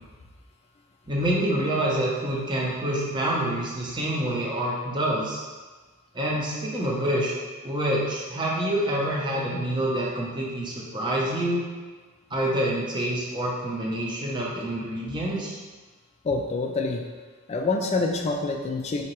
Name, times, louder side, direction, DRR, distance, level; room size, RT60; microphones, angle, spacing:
voice 1, 1.1-5.4 6.1-7.3 7.6-11.6 12.3-15.6, right 1 dB, 20° right, -4 dB, 0.6 m, -27 dB
voice 2, 16.2-17.0 17.5-19.0, left 3 dB, 30° left, 2 dB, 0.3 m, -26 dB
4.4 x 2.8 x 3.0 m, 1.3 s
head